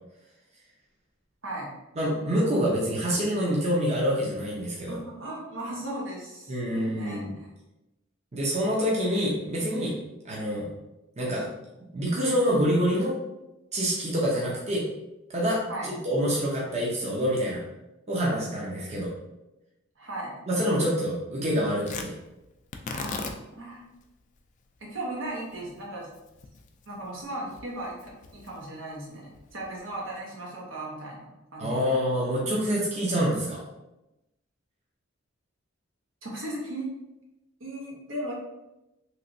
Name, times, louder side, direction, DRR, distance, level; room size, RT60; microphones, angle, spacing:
voice 1, 1.4-1.7 4.9-7.2 15.7-15.9 20.0-20.3 22.9-23.9 24.8-26.1 26.9-32.0 36.2-36.9 37.6-38.3, right 1 dB, 75° right, -3 dB, 0.9 m, -37 dB
voice 2, 2.0-5.0 6.5-7.3 8.3-9.9 10.2-10.7 11.2-11.4 11.9-13.2 13.7-14.8 15.3-17.6 18.1-19.1 20.5-22.1 31.6-33.6, equal, 35° right, -5 dB, 0.7 m, -26 dB
Tearing, 21.8-30.2, left 4 dB, 40° left, 0.3 m, -42 dB
3.1 x 2.9 x 2.6 m, 0.96 s
head